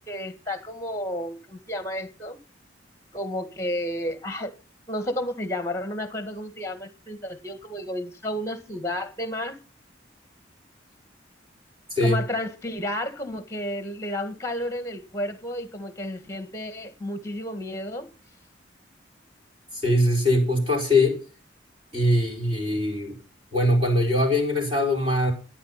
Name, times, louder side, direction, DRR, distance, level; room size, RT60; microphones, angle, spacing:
voice 1, 0.1-2.4 3.1-4.5 4.9-9.6 12.0-18.1, left 1 dB, 15° left, 1.8 m, -32 dB
voice 2, 19.7-21.2 21.9-23.2 23.5-25.3, left 1 dB, 30° right, 5.0 m, -22 dB
12.5 x 10.5 x 5.8 m
head